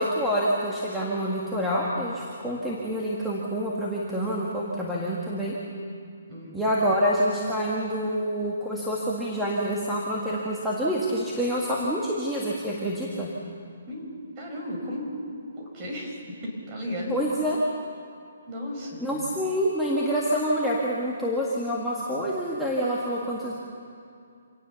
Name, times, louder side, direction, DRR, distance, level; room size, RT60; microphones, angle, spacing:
voice 1, 0.0-5.5 6.5-13.3 17.1-17.6 19.0-23.5, equal, ahead, -6 dB, 1.8 m, -27 dB
voice 2, 6.3-6.7 13.9-14.1 14.4-15.1 15.6-16.2 16.4-17.1 18.5-19.4, left 1 dB, 25° right, -1 dB, 5.3 m, -35 dB
26.5 x 18.0 x 7.1 m, 2.4 s
hypercardioid pair, 165°, 0 cm